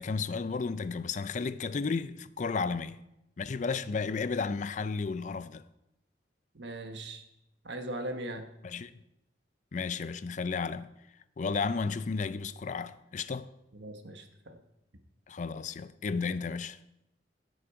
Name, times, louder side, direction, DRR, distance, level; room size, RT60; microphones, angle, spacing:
voice 1, 0.0-3.0 3.4-5.7 8.6-8.9 9.7-10.9 11.4-13.5 15.3-16.8, left 4 dB, 40° left, 0.4 m, -33 dB
voice 2, 6.5-7.2 7.6-8.5 13.7-14.6, right 1 dB, 75° right, 1.2 m, -39 dB
16.0 x 6.3 x 4.7 m
head